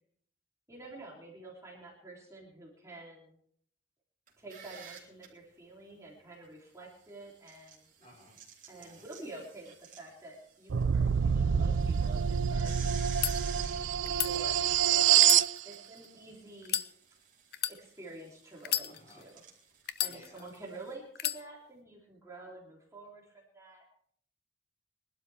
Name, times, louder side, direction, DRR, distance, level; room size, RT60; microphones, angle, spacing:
voice 1, 0.7-3.4 4.4-7.9 8.7-12.9 14.0-15.3 15.6-16.8 17.7-19.4 20.0-23.8, right 2 dB, 15° right, -3 dB, 3.3 m, -49 dB
sound 1, 4.3-5.3 7.2-10.8 11.2-11.3 11.7-20.9, right 7 dB, 40° right, 3.4 m, -51 dB
voice 2, 8.0-8.4 8.7-9.0 13.3-13.7 18.8-19.3 20.1-20.5, left 1 dB, 35° left, -1 dB, 5.0 m, -58 dB
sound 2, 10.7-15.5, right 8 dB, 70° right, 0.5 m, -26 dB
sound 3, 13.0-13.3 14.0-14.3 15.1-16.1 16.6-16.9 17.5-17.8 18.6-19.3 19.9-20.6 21.2-21.4, left 12 dB, 55° left, 0.7 m, -33 dB
22.5 x 12.0 x 3.5 m, 0.63 s
head